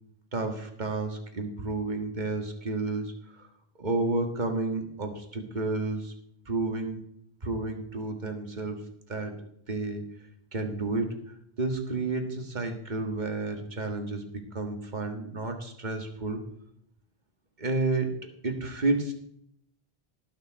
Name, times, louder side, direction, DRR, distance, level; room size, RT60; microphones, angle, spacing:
voice 1, 0.3-3.5 3.8-6.1 6.5-7.0 7.4-8.8 9.1-9.3 9.7-10.0 10.5-14.2 14.5-16.4 17.6-18.1 18.4-19.1, right 3 dB, 45° right, 4 dB, 1.7 m, -31 dB
18.5 x 6.4 x 4.6 m, 0.72 s
omnidirectional pair, 1.1 m